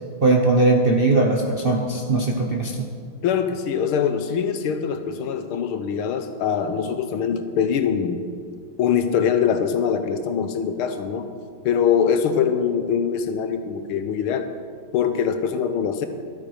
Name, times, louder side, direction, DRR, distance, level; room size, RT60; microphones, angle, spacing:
voice 1, 0.2-2.9, right 2 dB, 50° right, 0 dB, 0.7 m, -19 dB
voice 2, 3.2-8.3 8.8-11.3 11.7-14.5 14.9-16.1, left 7 dB, 90° left, 8 dB, 1.8 m, -23 dB
13.0 x 12.0 x 4.9 m, 2.2 s
omnidirectional pair, 2.3 m